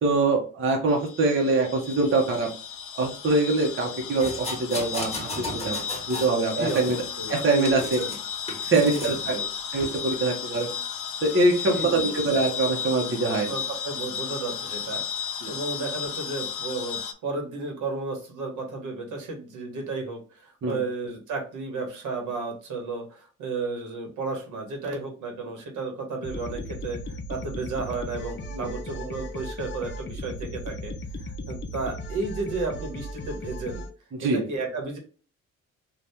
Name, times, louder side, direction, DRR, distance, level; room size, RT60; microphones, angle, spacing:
voice 1, 0.0-2.5 3.0-7.0 7.3-8.0 8.6-9.4 9.7-10.7 11.2-13.5 15.4-15.6 20.6-20.8 28.5-28.7 34.1-34.4, right 3 dB, 40° right, 0 dB, 0.9 m, -24 dB
sound 1, 0.9-17.1, left 7 dB, 90° left, 0.5 m, -34 dB
sound 2, 4.2-6.4 6.7-8.2 8.5-9.2 9.8-10.0, left 1 dB, 20° left, 1.2 m, -36 dB
voice 2, 7.2-8.1 8.8-9.5 11.7-12.2 13.3-15.0 15.5-30.9 31.2-33.8 34.2-35.0, right 3 dB, 80° right, 2 dB, 1.2 m, -33 dB
sound 3, 26.2-33.9, left 1 dB, 35° left, 0.6 m, -36 dB
2.7 x 2.4 x 3.4 m, 0.37 s
cardioid pair, 90°, 30 cm